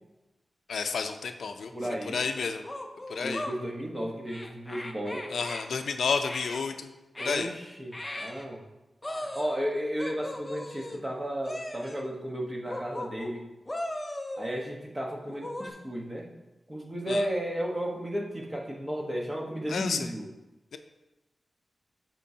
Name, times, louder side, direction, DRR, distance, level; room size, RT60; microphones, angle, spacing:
voice 1, 0.7-1.7 2.1-2.6 3.1-3.4 5.3-6.9 7.2-7.5 17.1-17.2 19.7-20.1, left 5 dB, 85° left, 7 dB, 0.5 m, -30 dB
voice 2, 1.7-2.2 3.2-5.3 7.2-8.6 9.2-13.4 14.4-16.3 16.7-20.3, equal, 15° right, -1 dB, 1.1 m, -33 dB
sound 1, 1.8-1.9 2.6-3.6 4.3-5.7 6.2-6.6 7.2-7.5 7.9-8.5 9.0-9.6 10.0-11.0 11.4-12.1 12.7-13.3 13.7-14.7 15.3-15.7, left 1 dB, 15° left, 0.6 m, -38 dB
12.5 x 4.6 x 2.8 m, 1.0 s
wide cardioid pair, 145°, 0 cm